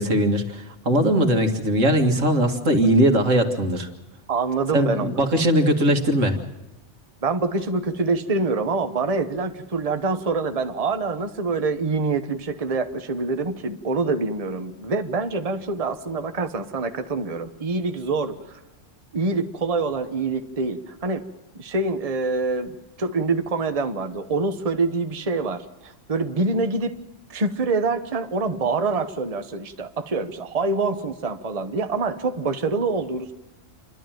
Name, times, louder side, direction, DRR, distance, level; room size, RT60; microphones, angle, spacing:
voice 1, 0.0-3.9 4.7-6.4, right 1 dB, 85° right, 4 dB, 2.4 m, -20 dB
voice 2, 4.3-5.2 7.2-18.5 19.1-21.2 21.6-26.9 27.3-33.3, right 3 dB, 30° right, 8 dB, 1.1 m, -25 dB
28.5 x 12.5 x 9.2 m, 1.0 s
omnidirectional pair, 1.3 m